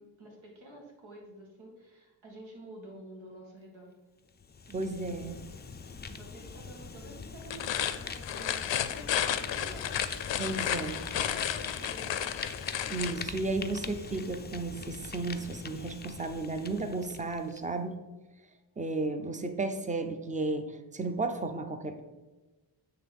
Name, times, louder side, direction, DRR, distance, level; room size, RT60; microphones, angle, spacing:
voice 1, 0.0-3.9 4.7-5.2 6.1-9.0 9.2-9.9 10.4-12.2, right 1 dB, 85° right, -1 dB, 2.0 m, -50 dB
Fire, 4.3-17.6, left 5 dB, 25° left, 0.4 m, -43 dB
voice 2, 4.7-5.4 10.4-11.0 12.9-18.0 18.8-22.0, right 3 dB, 15° right, 8 dB, 0.6 m, -33 dB
sound 1, 6.5-14.5, equal, 40° right, 1.5 m, -54 dB
sound 2, 7.4-13.2, left 10 dB, 70° left, 0.6 m, -32 dB
8.1 x 3.4 x 5.3 m, 1.2 s
wide cardioid pair, 100°, 47 cm